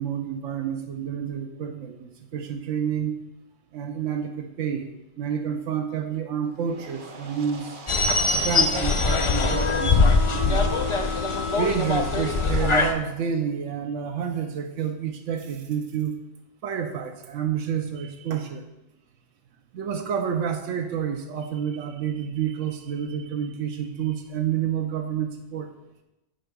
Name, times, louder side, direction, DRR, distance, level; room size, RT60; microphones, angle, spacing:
voice 1, 0.0-3.2 3.7-4.9 5.2-7.8 8.3-10.9 11.6-16.1 16.6-18.6 19.7-25.7, right 8 dB, 85° right, 4 dB, 1.1 m, -29 dB
sound 1, 6.4-12.9, right 3 dB, 50° right, 0.9 m, -42 dB
sound 2, 7.9-12.9, left 3 dB, 45° left, 0.4 m, -22 dB
15.5 x 5.2 x 2.3 m, 0.93 s
omnidirectional pair, 1.2 m